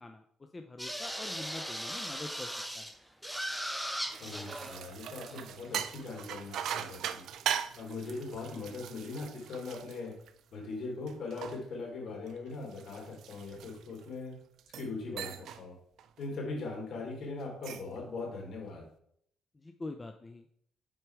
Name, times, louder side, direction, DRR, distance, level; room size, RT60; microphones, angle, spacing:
voice 1, 0.0-2.5 2.7-3.0 19.5-20.5, left 2 dB, 25° left, 6 dB, 0.6 m, -45 dB
sound 1, 0.8-3.0 3.2-4.8 5.2-5.9 7.9-8.3, equal, 5° right, 0.9 m, -38 dB
sound 2, 3.8-10.6 11.1-14.1 14.6-14.9 15.2-15.6 16.0-16.3 17.4-18.0, right 9 dB, 70° right, 0.5 m, -40 dB
voice 2, 3.9-7.2 7.8-10.1 10.5-14.3 14.8-15.8 16.2-18.8, left 3 dB, 65° left, -1 dB, 3.5 m, -40 dB
7.8 x 4.7 x 4.8 m, 0.68 s
supercardioid pair, 75°, 0 cm